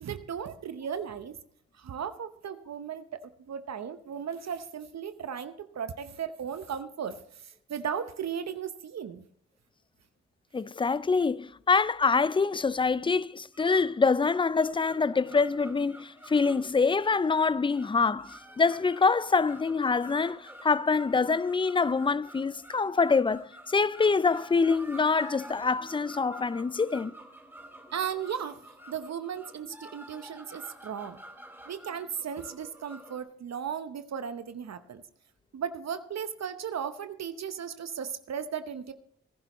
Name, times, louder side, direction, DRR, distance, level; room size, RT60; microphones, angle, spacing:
voice 1, 0.0-1.3 1.8-9.2 27.9-28.6 28.9-31.2 31.7-35.0 35.5-38.9, right 8 dB, 60° right, 0.9 m, -36 dB
voice 2, 10.5-27.1, left 4 dB, 15° left, 0.4 m, -25 dB
sound 1, 13.3-33.2, right 1 dB, 5° right, 2.2 m, -50 dB
19.0 x 11.0 x 3.0 m
supercardioid pair, 45°, 30 cm